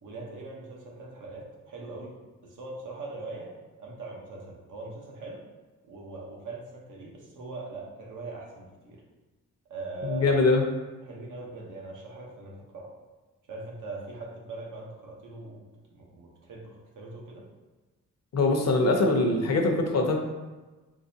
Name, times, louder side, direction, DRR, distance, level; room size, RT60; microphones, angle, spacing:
voice 1, 0.0-2.2 2.4-3.5 3.8-5.4 5.9-9.0 9.7-10.4 11.0-12.9 13.5-15.6 15.9-17.4, right 3 dB, 80° right, -2 dB, 0.9 m, -41 dB
voice 2, 10.0-10.6 18.3-20.2, left 3 dB, 55° left, 2 dB, 0.6 m, -23 dB
3.8 x 3.0 x 2.7 m, 1.2 s
wide cardioid pair, 120°, 31 cm